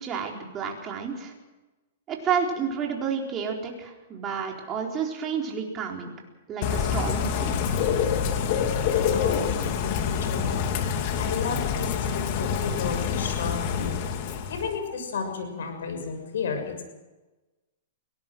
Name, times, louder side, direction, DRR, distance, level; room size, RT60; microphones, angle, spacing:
voice 1, 0.0-1.3 2.1-6.1 6.5-7.5, right 6 dB, 25° right, 0 dB, 4.2 m, -30 dB
Bird / Rain, 6.6-14.8, left 7 dB, 45° left, 2.4 m, -26 dB
voice 2, 9.1-10.6 10.9-16.8, left 5 dB, 75° left, 5 dB, 6.3 m, -33 dB
23.0 x 18.0 x 6.3 m, 1.1 s
hypercardioid pair, 140°, 0 cm